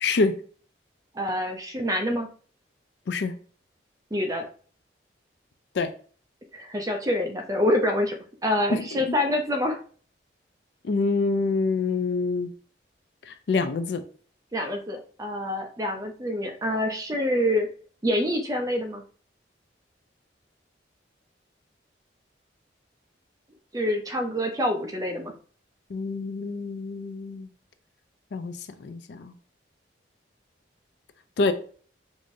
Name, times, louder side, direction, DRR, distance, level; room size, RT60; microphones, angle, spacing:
voice 1, 0.0-0.3 3.1-3.3 5.8-5.9 8.7-9.1 10.8-12.5 13.3-14.0 25.9-27.5 28.3-28.5 28.8-29.3 31.4-31.5, left 4 dB, 65° left, 10 dB, 0.4 m, -26 dB
voice 2, 1.1-2.3 4.1-4.5 6.5-9.8 14.5-17.7 18.0-19.0 23.7-25.3, left 1 dB, 20° right, 4 dB, 0.5 m, -26 dB
4.8 x 2.6 x 2.6 m, 0.43 s
head